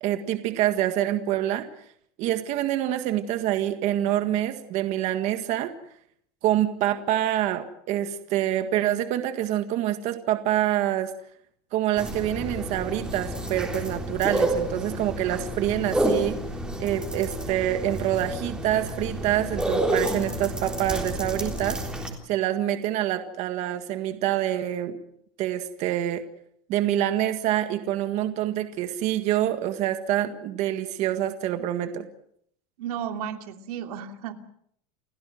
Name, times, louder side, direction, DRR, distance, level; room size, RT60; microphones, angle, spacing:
voice 1, 0.0-1.7 2.2-5.7 6.4-11.1 11.7-16.4 16.8-21.8 22.3-25.0 25.4-26.2 26.7-32.1, right 12 dB, 35° right, 8 dB, 1.7 m, -26 dB
sound 1, 12.0-22.1, right 1 dB, 5° right, 3.6 m, -29 dB
voice 2, 32.8-34.3, right 9 dB, 90° right, 6 dB, 2.9 m, -33 dB
30.0 x 16.5 x 7.8 m, 0.69 s
supercardioid pair, 180°, 19 cm